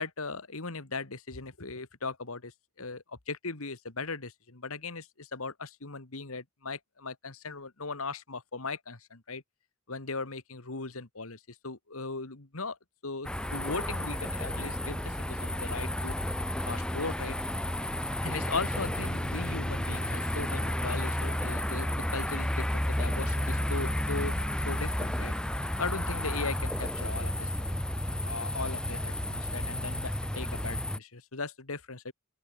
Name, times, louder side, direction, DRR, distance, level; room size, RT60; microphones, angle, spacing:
voice 1, 0.0-9.4 9.9-12.8 13.0-16.1 16.6-17.4 18.2-25.3 25.8-32.1, left 3 dB, 75° left, 1.9 m, -38 dB
sound 1, 13.2-31.0, left 1 dB, 5° left, 0.6 m, -32 dB
open air
head